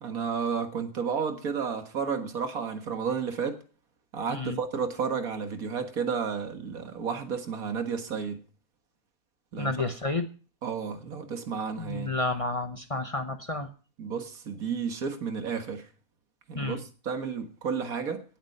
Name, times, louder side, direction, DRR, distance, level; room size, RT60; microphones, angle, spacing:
voice 1, 0.0-3.6 4.1-8.4 9.5-9.7 10.6-12.1 14.0-15.9 16.5-18.2, right 6 dB, 80° right, 2.0 m, -32 dB
voice 2, 9.6-10.3 11.8-13.7 16.5-16.8, left 3 dB, 25° left, 0.9 m, -31 dB
17.5 x 7.5 x 5.5 m
omnidirectional pair, 1.5 m